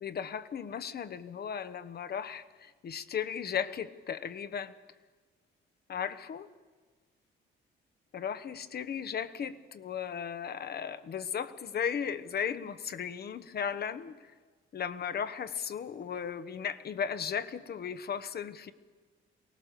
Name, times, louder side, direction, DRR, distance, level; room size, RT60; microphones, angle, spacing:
voice 1, 0.0-4.8 5.9-6.5 8.1-14.3 14.7-18.7, left 7 dB, 50° left, 12 dB, 1.1 m, -36 dB
23.5 x 18.0 x 6.8 m, 1.4 s
cardioid pair, 90°, 20 cm